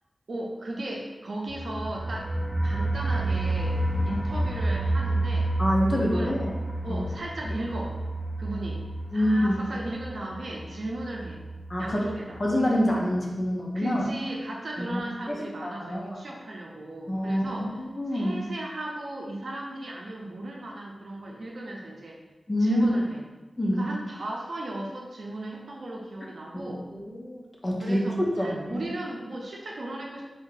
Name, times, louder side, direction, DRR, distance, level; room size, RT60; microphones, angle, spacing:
voice 1, 0.3-2.3 2.6-5.5 6.0-6.3 6.8-8.0 8.4-8.8 9.1-11.4 11.8-12.4 13.7-17.7 18.1-22.2 22.6-23.2 23.7-26.8 27.8-30.2, right 1 dB, 65° right, -1 dB, 0.6 m, -36 dB
sound 1, 1.5-12.2 12.5-12.6 12.9-13.0, right 1 dB, 5° right, 0.5 m, -30 dB
voice 2, 5.6-6.5 6.9-7.1 9.1-9.6 11.7-12.1 12.4-14.1 14.8-15.0 15.3-16.2 17.1-17.4 17.8-18.4 22.5-22.8 23.6-23.9 26.5-26.8 27.1-28.0 28.4-28.8, equal, 30° left, -2 dB, 0.7 m, -26 dB
3.4 x 2.7 x 3.8 m, 1.2 s
wide cardioid pair, 115°, 0 cm